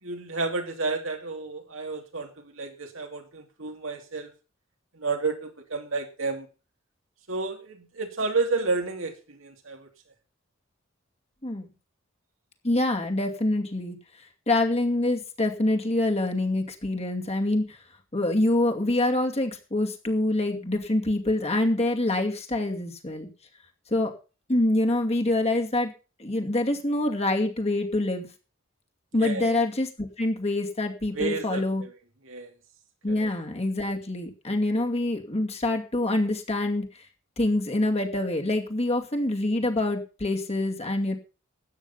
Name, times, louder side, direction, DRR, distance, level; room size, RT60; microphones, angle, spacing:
voice 1, 0.0-4.3 4.9-6.5 7.3-9.9 29.2-29.5 31.1-31.9 32.2-32.5 33.1-33.3, right 3 dB, 75° right, 4 dB, 2.7 m, -31 dB
voice 2, 12.6-14.0 14.5-17.8 18.1-23.3 23.9-24.1 24.5-25.9 26.2-28.3 29.1-31.8 33.0-36.9 37.4-41.1, left 1 dB, 30° left, 3 dB, 2.4 m, -25 dB
13.5 x 9.2 x 5.6 m, 0.34 s
head